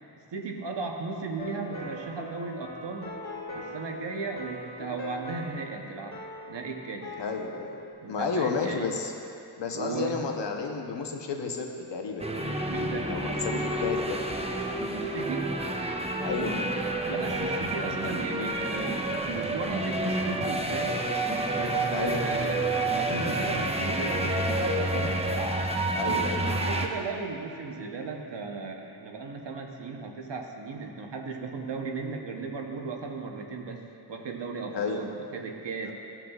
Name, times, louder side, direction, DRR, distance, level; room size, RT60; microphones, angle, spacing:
voice 1, 0.3-3.1 3.5-6.2 6.5-7.1 8.0-8.9 9.7-10.2 12.7-13.2 14.9-15.5 17.0-21.0 21.5-25.3 26.6-33.8 34.1-35.9, right 4 dB, 90° right, 2 dB, 0.9 m, -36 dB
sound 1, 1.4-7.9, left 2 dB, 40° left, 1.8 m, -41 dB
voice 2, 7.2-7.7 8.1-9.1 9.6-12.3 13.0-14.2 16.2-16.6 21.9-22.2 25.9-26.7 34.7-35.0 35.8-35.9, left 5 dB, 85° left, 2 dB, 0.8 m, -31 dB
sound 2, 12.2-26.9, right 1 dB, 15° right, 0.7 m, -29 dB
15.0 x 5.9 x 2.3 m, 2.7 s
cardioid pair, 50°, 41 cm